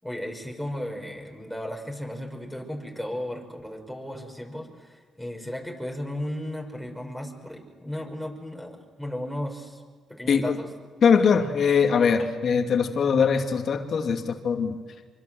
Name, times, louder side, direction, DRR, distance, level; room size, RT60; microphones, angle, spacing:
voice 1, 0.0-9.8 10.1-10.7, left 1 dB, ahead, 3 dB, 5.5 m, -35 dB
voice 2, 11.0-14.8, left 6 dB, 55° left, 5 dB, 2.5 m, -22 dB
26.0 x 24.5 x 7.8 m, 1.4 s
cardioid pair, 90°, 0 cm